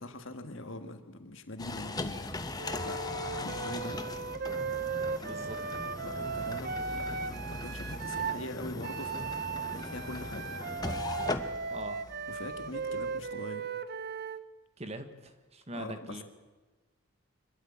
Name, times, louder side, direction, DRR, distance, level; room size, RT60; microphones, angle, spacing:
voice 1, 0.0-3.0 3.4-4.0 6.0-9.4 9.7-10.5 12.3-13.6 15.7-16.2, left 2 dB, 65° left, 7 dB, 1.7 m, -43 dB
sound 1, 1.6-13.3, left 2 dB, 20° left, 1.0 m, -39 dB
Wind instrument woodwind instrument, 2.6-8.4 8.8-14.4, right 5 dB, 45° right, 0.6 m, -37 dB
voice 2, 5.2-5.6 11.7-12.0 14.8-16.2, right 1 dB, 30° right, 9 dB, 1.3 m, -42 dB
25.0 x 13.0 x 8.7 m, 1.3 s
head